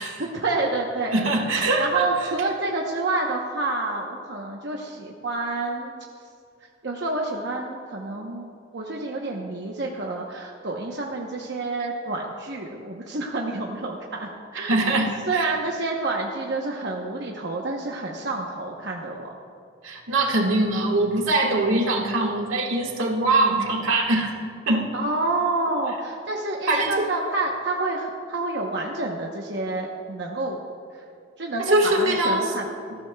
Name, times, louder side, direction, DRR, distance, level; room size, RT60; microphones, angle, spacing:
voice 1, 0.2-1.1 1.8-5.9 6.8-8.5 8.7-15.0 15.3-19.4 24.9-30.6 30.9-31.0 31.4-32.7, right 2 dB, 55° right, -1 dB, 0.9 m, -28 dB
voice 2, 1.1-2.1 14.7-15.5 19.8-24.3 24.7-24.9 26.7-27.1 31.6-32.5, right 2 dB, 80° right, 0 dB, 1.7 m, -22 dB
19.0 x 14.5 x 2.3 m, 2.3 s
head